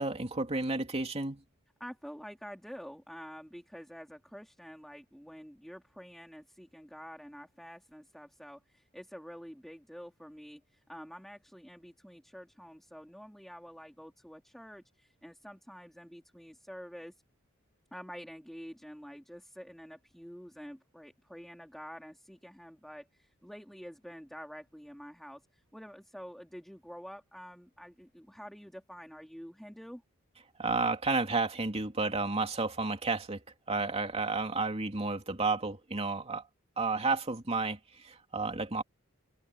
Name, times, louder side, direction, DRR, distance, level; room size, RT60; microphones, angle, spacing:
voice 1, 0.0-1.4 30.6-33.4 33.7-36.5 36.8-38.8, right 3 dB, 30° right, 2.7 m, -31 dB
voice 2, 1.8-17.1 17.9-30.0, equal, ahead, 2.9 m, -48 dB
open air
head